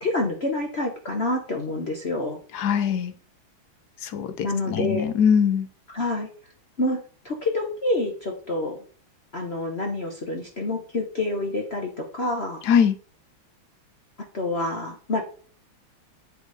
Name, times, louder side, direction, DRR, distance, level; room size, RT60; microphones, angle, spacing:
voice 1, 0.0-2.4 4.4-5.0 5.9-6.3 6.8-7.0 7.2-8.8 9.3-12.6 14.3-15.2, left 2 dB, 40° left, 1 dB, 1.0 m, -27 dB
voice 2, 2.5-3.1 4.0-5.7 12.7-12.9, left 7 dB, 65° left, 10 dB, 1.1 m, -22 dB
8.1 x 4.2 x 4.8 m, 0.43 s
omnidirectional pair, 2.3 m